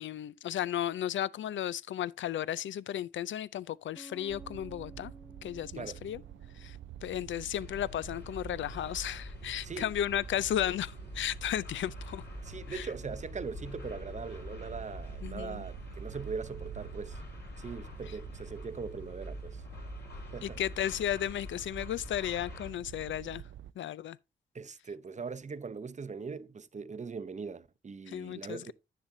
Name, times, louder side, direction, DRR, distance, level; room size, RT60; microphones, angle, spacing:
voice 1, 0.0-5.1 5.4-6.2 6.6-6.8 7.0-12.2 12.7-12.9 15.2-15.6 20.4-23.4 23.8-24.2 28.1-28.7, left 11 dB, 75° left, 0.4 m, -34 dB
Bass guitar, 3.9-7.6, equal, 5° left, 0.9 m, -54 dB
sound 1, 4.3-23.7, right 11 dB, 70° right, 0.4 m, -47 dB
sound 2, 7.6-22.7, left 3 dB, 55° left, 4.3 m, -46 dB
voice 2, 12.4-17.2 17.6-19.6 20.3-20.6 24.5-28.7, right 5 dB, 35° right, 0.7 m, -41 dB
10.0 x 6.7 x 2.7 m
cardioid pair, 50°, 20 cm